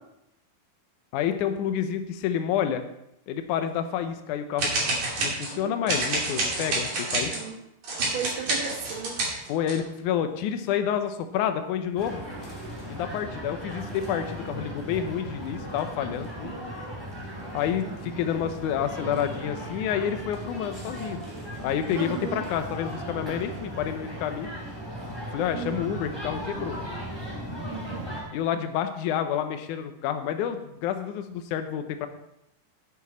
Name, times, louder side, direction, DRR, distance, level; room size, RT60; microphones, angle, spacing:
voice 1, 1.1-2.9 3.3-4.9 5.2-7.3 9.5-12.2 12.9-16.5 17.5-21.2 21.6-24.5 25.3-26.8 28.3-32.1, left 9 dB, 75° left, 8 dB, 1.9 m, -29 dB
sound 1, 4.6-5.6 5.9-7.4 7.8-9.8, right 2 dB, 45° right, 3.5 m, -28 dB
voice 2, 5.2-6.0 7.3-7.5 8.0-9.2 16.5-16.7 21.9-22.4 25.5-25.7 27.7-28.1, right 6 dB, 75° right, 2 dB, 1.1 m, -36 dB
sound 2, 12.0-28.2, equal, 5° right, 2.8 m, -37 dB
9.9 x 9.8 x 4.1 m, 0.83 s
omnidirectional pair, 4.4 m